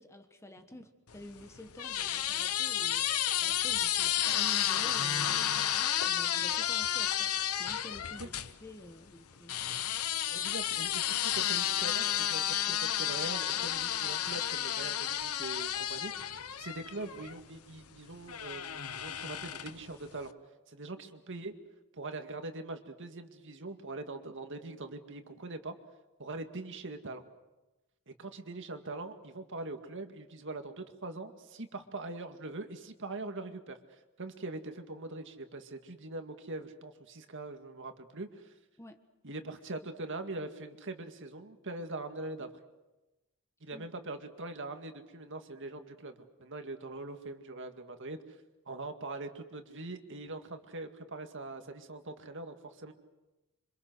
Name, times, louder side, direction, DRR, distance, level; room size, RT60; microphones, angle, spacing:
voice 1, 0.0-5.5 6.0-8.3 8.6-9.9 38.8-39.0 43.7-43.9, left 1 dB, 15° left, 7 dB, 1.3 m, -49 dB
sound 1, 1.1-8.5 9.5-17.4 18.3-19.9, left 11 dB, 75° left, 1.0 m, -32 dB
voice 2, 10.3-20.3 20.7-21.5 21.9-25.8 26.2-27.2 28.1-33.8 34.2-38.5 39.2-42.5 43.6-48.4 48.7-52.9, right 2 dB, 55° right, 6 dB, 2.1 m, -42 dB
27.0 x 25.5 x 6.4 m, 1.0 s
head